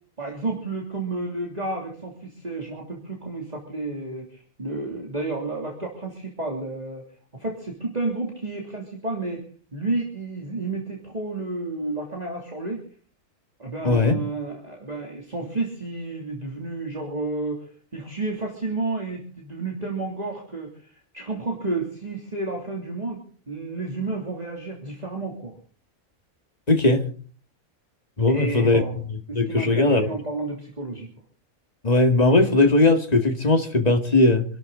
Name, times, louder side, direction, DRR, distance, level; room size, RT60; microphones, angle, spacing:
voice 1, 0.2-7.0 7.3-9.4 9.7-12.8 13.6-17.7 17.9-25.5 28.3-29.0 29.3-31.1, right 2 dB, 25° right, 0 dB, 3.1 m, -31 dB
voice 2, 13.8-14.2 26.7-27.0 28.2-28.8 29.3-30.1 31.8-34.4, left 2 dB, 25° left, 4 dB, 2.2 m, -18 dB
27.0 x 12.5 x 4.0 m, 0.43 s
omnidirectional pair, 1.5 m